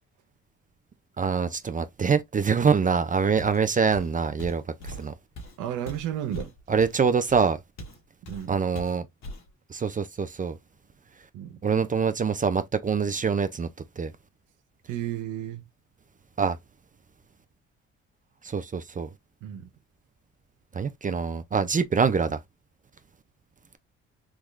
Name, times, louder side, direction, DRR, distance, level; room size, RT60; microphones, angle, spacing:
voice 1, 1.2-5.1 6.7-7.6 8.5-9.0 9.7-10.6 11.6-13.7 14.0-14.1 16.4-16.6 18.4-19.1 20.7-22.4, right 5 dB, 25° right, 0.4 m, -25 dB
Walk footsteps, 3.4-3.6 3.9-8.0 8.2-8.5 8.7-9.5, left 1 dB, 60° left, 1.4 m, -41 dB
voice 2, 5.6-6.5 8.3-8.6 11.3-11.6 14.9-15.6 19.4-19.7, right 11 dB, 85° right, 0.7 m, -32 dB
3.6 x 2.3 x 3.0 m
cardioid pair, 90°, 30 cm